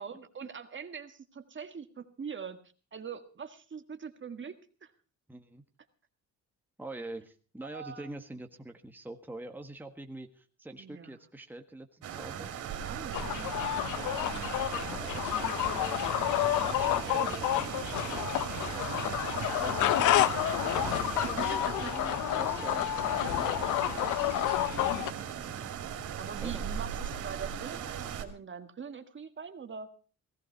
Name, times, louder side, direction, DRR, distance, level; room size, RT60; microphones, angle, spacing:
voice 1, 0.0-2.6 2.9-4.9 7.6-8.1 10.8-11.2 12.8-13.5 17.1-17.4 21.2-22.2 23.2-23.6 26.2-29.9, right 6 dB, 40° right, 8 dB, 1.8 m, -43 dB
voice 2, 5.3-5.6 6.8-12.5 13.9-17.5 17.9-25.5 26.4-26.6, right 2 dB, 5° right, 4 dB, 1.5 m, -46 dB
sound 1, 12.0-28.2, right 8 dB, 75° right, 2.7 m, -38 dB
sound 2, 13.1-25.1, left 14 dB, 80° left, 0.8 m, -30 dB
17.0 x 15.5 x 4.6 m, 0.37 s
cardioid pair, 90°, 30 cm